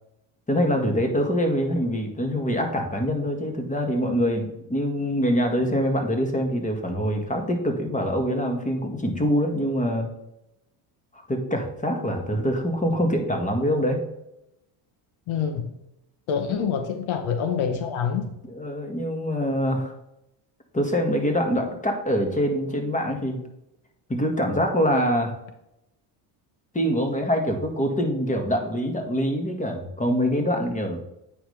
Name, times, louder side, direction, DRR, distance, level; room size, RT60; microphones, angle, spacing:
voice 1, 0.5-10.1 11.1-14.0 16.5-16.6 18.4-19.9 20.7-23.4 24.1-25.3 26.7-31.0, equal, 15° left, 4 dB, 1.7 m, -24 dB
voice 2, 15.3-15.6 16.3-18.3, left 7 dB, 70° left, 7 dB, 1.0 m, -26 dB
8.5 x 5.6 x 3.3 m, 0.85 s
cardioid pair, 95°, 49 cm